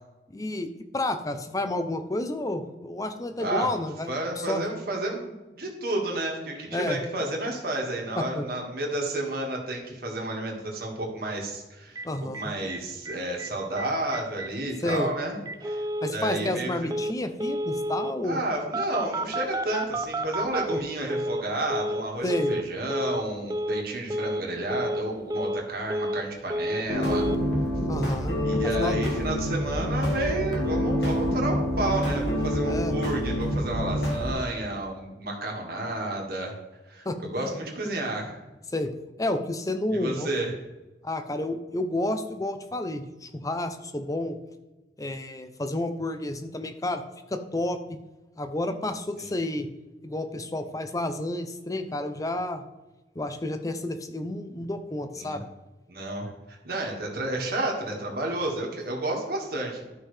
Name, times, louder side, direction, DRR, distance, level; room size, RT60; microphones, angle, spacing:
voice 1, 0.3-4.6 6.7-7.0 8.2-8.5 12.0-12.5 14.8-15.1 16.0-18.4 22.2-22.6 27.9-28.4 28.6-28.9 32.6-33.0 37.0-37.5 38.7-38.9 39.2-40.3 41.0-44.4 45.0-47.0 47.3-48.0 48.4-49.7 50.0-52.7 53.2-55.4, left 1 dB, 20° left, 8 dB, 0.6 m, -30 dB
voice 2, 3.4-3.7 4.1-12.0 12.3-16.9 18.2-27.3 28.4-36.6 36.9-38.4 39.9-40.5 49.2-49.3 55.2-55.4 55.9-59.9, right 1 dB, 55° right, 0 dB, 1.9 m, -31 dB
Telephone, 12.0-12.1 12.3-12.4 12.7-12.8 13.1-13.5 13.8-13.9 14.1-14.5 14.9-15.0 15.5-16.1 16.9-17.1 17.4-18.1 18.7-21.4 21.7-22.0 22.3-22.6 22.9-23.2 23.5-23.8 24.1-24.4 24.7-25.0 25.3-26.2 26.5-26.8 27.1-27.4, right 1 dB, 20° right, 0.3 m, -30 dB
sound 1, 26.9-34.3, equal, 70° left, 2.0 m, -27 dB
13.0 x 5.5 x 3.4 m, 1.1 s
head